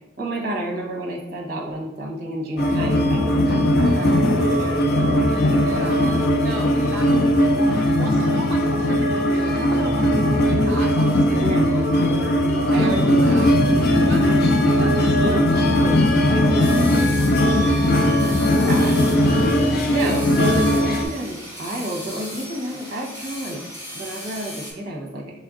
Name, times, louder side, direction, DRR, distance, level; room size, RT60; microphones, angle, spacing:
voice 1, 0.2-6.1 6.6-6.7 11.4-11.8 12.7-13.6 15.2-15.4 15.7-17.1 18.6-19.0 19.9-23.6 23.9-25.3, right 1 dB, 50° right, -1 dB, 0.9 m, -30 dB
sound 1, 2.6-21.0, left 1 dB, 50° left, 0.4 m, -19 dB
voice 2, 5.6-11.4 11.9-15.4 16.2-16.4 16.8-17.1 17.4-17.9 18.2-18.5 18.8-19.4, right 3 dB, 70° right, 2 dB, 0.4 m, -34 dB
sound 2, 16.6-24.7, equal, 20° left, 1.5 m, -37 dB
5.1 x 3.3 x 2.5 m, 1.0 s
head